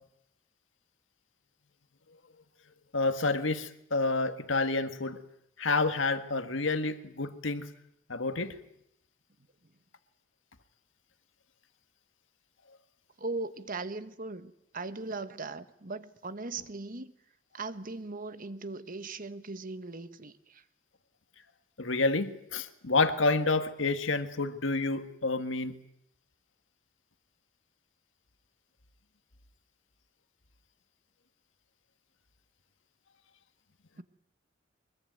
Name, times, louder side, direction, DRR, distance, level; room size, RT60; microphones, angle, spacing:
voice 1, 2.9-5.2 5.6-7.7 8.1-8.5 21.8-25.7, left 3 dB, 75° left, 1.7 m, -29 dB
voice 2, 13.2-17.1 17.5-20.6 34.0-34.1, right 3 dB, 45° right, 1.3 m, -39 dB
23.5 x 21.5 x 9.3 m
head